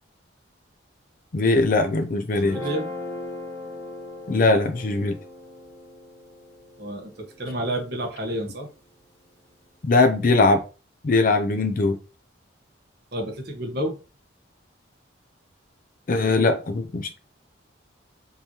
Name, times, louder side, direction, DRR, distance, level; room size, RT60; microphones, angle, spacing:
voice 1, 1.3-2.6 4.3-5.2 9.8-10.6 11.0-12.0 16.1-17.2, left 3 dB, 45° left, 0.5 m, -20 dB
Guitar, 2.3-8.6, left 2 dB, 15° left, 1.4 m, -39 dB
voice 2, 2.3-2.9 6.8-7.1 7.4-8.7 13.1-14.0, right 1 dB, 55° right, 1.3 m, -29 dB
5.3 x 3.1 x 2.8 m
head